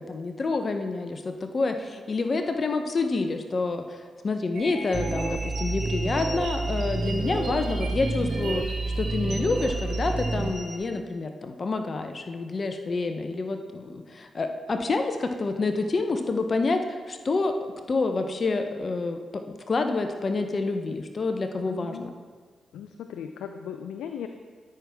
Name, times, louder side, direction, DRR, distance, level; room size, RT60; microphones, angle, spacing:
voice 1, 0.0-19.4 19.7-22.1, left 3 dB, 50° left, 6 dB, 0.8 m, -28 dB
sound 1, 4.5-10.8, right 2 dB, 80° right, 2.7 m, -38 dB
sound 2, 4.9-10.5, right 3 dB, 40° right, 0.5 m, -29 dB
voice 2, 21.7-22.0 22.7-24.3, left 8 dB, 85° left, 7 dB, 0.4 m, -37 dB
13.0 x 6.0 x 3.5 m, 1.5 s
supercardioid pair, 45°, 0 cm